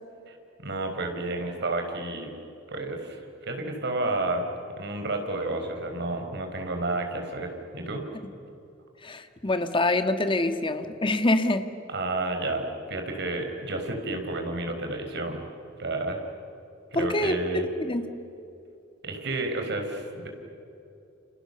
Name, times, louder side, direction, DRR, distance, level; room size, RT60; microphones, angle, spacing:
voice 1, 0.3-2.3 2.7-3.2 3.5-4.5 4.8-8.0 11.9-15.4 15.8-16.2 16.9-17.7 19.0-20.3, right 2 dB, 60° right, 4 dB, 4.6 m, -31 dB
voice 2, 9.0-11.7 16.9-18.1, left 2 dB, 25° left, 8 dB, 1.6 m, -25 dB
29.5 x 29.0 x 6.9 m, 2.8 s
head